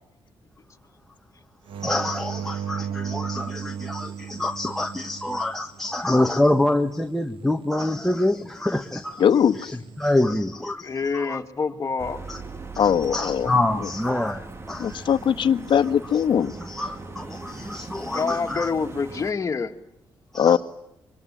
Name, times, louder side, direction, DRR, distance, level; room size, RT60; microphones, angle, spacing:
sound 1, 1.7-6.3 9.6-10.1, right 8 dB, 80° right, 1.4 m, -34 dB
voice 1, 1.8-9.2 9.6-11.4 12.3-12.4 12.7-15.0 16.6-18.7 20.3-20.6, left 1 dB, 5° left, 3 dB, 1.6 m, -26 dB
voice 2, 9.2-9.5 12.8-13.5 14.8-16.5 20.4-20.6, left 8 dB, 65° left, 9 dB, 1.3 m, -20 dB
voice 3, 10.8-12.3 18.0-19.7, left 5 dB, 35° left, 3 dB, 2.3 m, -27 dB
sound 2, 12.0-19.3, right 3 dB, 30° right, 1.9 m, -40 dB
25.5 x 24.0 x 8.7 m, 0.82 s
cardioid pair, 105°, 9 cm